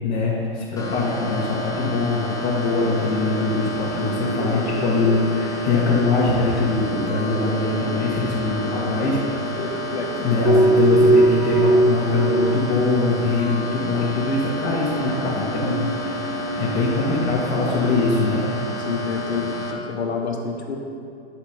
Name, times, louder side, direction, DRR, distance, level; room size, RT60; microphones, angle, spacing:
voice 1, 0.0-9.2 10.2-18.5, left 3 dB, 30° left, -7 dB, 1.6 m, -22 dB
sound 1, 0.8-19.7, equal, 10° left, 0.7 m, -31 dB
sound 2, 3.9-6.2 6.5-7.1 10.4-13.3 13.6-13.8 15.4-18.2, right 2 dB, 50° right, 1.8 m, -23 dB
voice 2, 9.6-10.2 18.8-20.8, left 5 dB, 80° left, 2 dB, 1.1 m, -28 dB
8.5 x 5.0 x 4.4 m, 2.4 s
hypercardioid pair, 115°, 32 cm